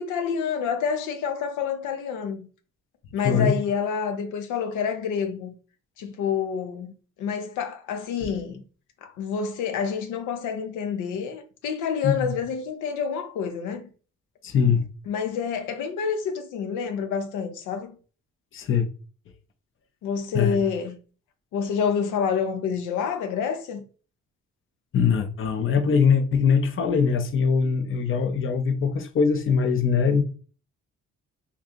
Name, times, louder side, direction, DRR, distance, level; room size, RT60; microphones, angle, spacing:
voice 1, 0.0-2.5 3.1-5.5 6.0-6.9 7.2-8.6 9.0-13.9 15.1-18.0 20.0-21.0 21.5-23.8, left 6 dB, 90° left, 0.6 m, -28 dB
voice 2, 3.2-3.6 12.0-12.3 14.4-14.9 18.5-18.9 20.3-20.6 24.9-30.2, left 6 dB, 45° left, 0.6 m, -22 dB
2.8 x 2.3 x 3.5 m
cardioid pair, 90°, 30 cm